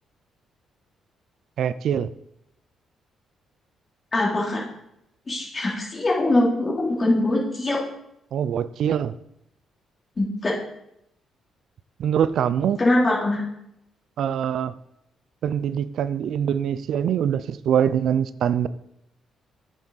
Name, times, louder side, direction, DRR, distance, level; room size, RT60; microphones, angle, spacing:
voice 1, 1.6-2.1 8.3-9.1 12.0-12.8 14.2-14.7 15.4-18.7, right 9 dB, 70° right, 15 dB, 0.3 m, -23 dB
voice 2, 4.1-4.6 5.3-7.8 10.2-10.5 12.8-13.4, left 2 dB, 30° left, -3 dB, 3.1 m, -22 dB
8.4 x 6.1 x 4.0 m, 0.80 s
cardioid pair, 90°, 0 cm